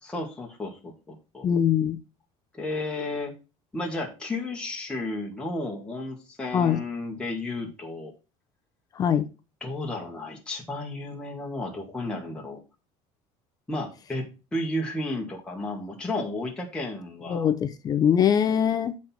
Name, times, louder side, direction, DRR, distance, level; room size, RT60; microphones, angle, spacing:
voice 1, 0.0-1.5 2.5-3.3 3.7-8.1 9.6-12.6 13.7-14.3 14.5-17.5, left 2 dB, 5° left, 1.5 m, -33 dB
voice 2, 1.4-2.0 6.5-6.8 9.0-9.3 17.3-19.0, left 8 dB, 30° left, 0.5 m, -22 dB
7.7 x 4.2 x 5.8 m
cardioid pair, 170°, 13 cm